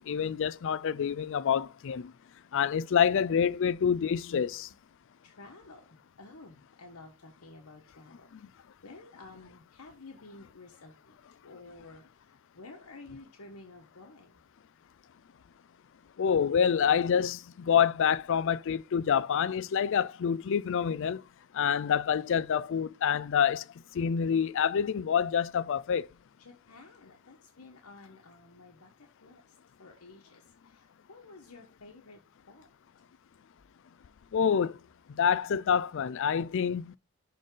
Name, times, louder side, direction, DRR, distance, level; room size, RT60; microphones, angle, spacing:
voice 1, 0.0-2.1 2.5-4.7 16.2-21.2 21.5-23.6 23.9-26.1 34.3-34.8 35.1-37.0, left 7 dB, 60° left, 0.4 m, -27 dB
voice 2, 5.2-14.4 26.4-32.2 32.5-32.7, left 3 dB, 75° left, 1.3 m, -52 dB
11.5 x 4.0 x 3.8 m
head